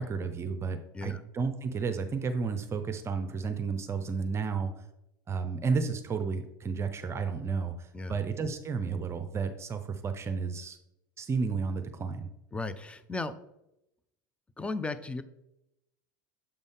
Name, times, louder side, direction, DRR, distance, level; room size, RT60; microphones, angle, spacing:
voice 1, 0.0-4.7 5.3-10.8 11.2-12.3, right 5 dB, 25° right, 9 dB, 0.7 m, -32 dB
voice 2, 12.5-13.3 14.6-15.2, left 3 dB, 10° left, 12 dB, 0.5 m, -35 dB
7.2 x 5.3 x 3.5 m, 0.84 s
figure-of-eight pair, 80°, 11 cm